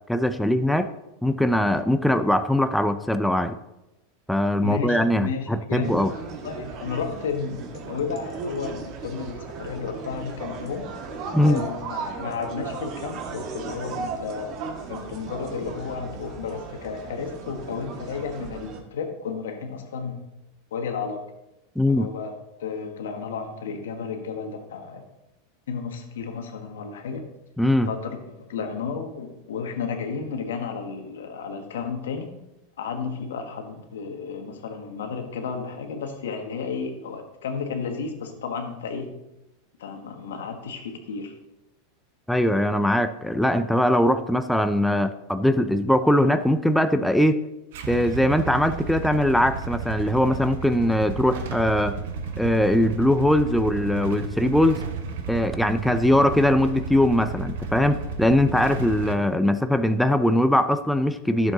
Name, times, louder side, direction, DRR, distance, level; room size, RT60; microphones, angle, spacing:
voice 1, 0.1-0.9 1.2-3.6 4.3-6.1 11.3-11.6 21.8-22.1 27.6-27.9 42.3-47.4 47.9-52.0 52.4-54.8 55.3-61.5, left 1 dB, ahead, 9 dB, 0.5 m, -21 dB
voice 2, 4.6-6.0 6.3-10.9 11.4-14.6 14.9-20.2 20.7-21.2 21.9-22.3 22.6-25.0 25.7-27.2 27.9-28.2 28.5-32.3 32.8-39.1 39.8-41.3, left 5 dB, 90° left, 5 dB, 1.5 m, -32 dB
sound 1, 5.8-18.8, right 5 dB, 45° right, 1.4 m, -36 dB
Motorcycle / Engine starting / Idling, 47.7-59.2, right 5 dB, 75° right, 1.0 m, -33 dB
11.0 x 7.3 x 3.9 m, 0.95 s
supercardioid pair, 125°, 0 cm